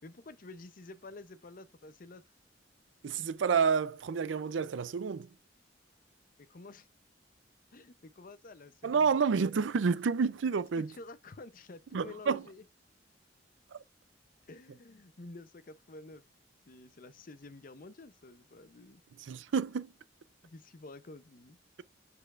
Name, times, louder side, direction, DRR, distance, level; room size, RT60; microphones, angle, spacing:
voice 1, 0.0-2.2 6.4-6.9 7.7-9.1 10.5-12.6 14.4-16.2 16.7-19.0 20.4-21.6, left 2 dB, 50° left, 0.7 m, -50 dB
voice 2, 3.0-5.3 8.8-10.9 11.9-12.4 13.7-13.8 19.2-19.9, right 5 dB, 85° right, 0.4 m, -29 dB
6.9 x 6.8 x 2.5 m
head